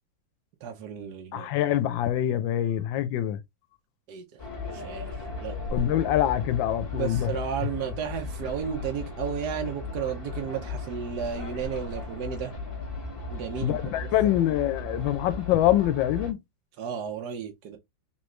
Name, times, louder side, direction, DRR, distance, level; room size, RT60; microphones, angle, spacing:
voice 1, 0.6-1.6 4.1-4.4 4.7-5.6 6.9-12.5 13.3-14.1 16.8-17.8, right 7 dB, 65° right, 1.3 m, -33 dB
voice 2, 1.3-3.4 5.7-7.3 13.6-16.4, left 12 dB, 85° left, 1.3 m, -25 dB
sound 1, 4.4-16.3, left 2 dB, 35° left, 1.3 m, -36 dB
3.8 x 3.1 x 3.1 m
omnidirectional pair, 2.1 m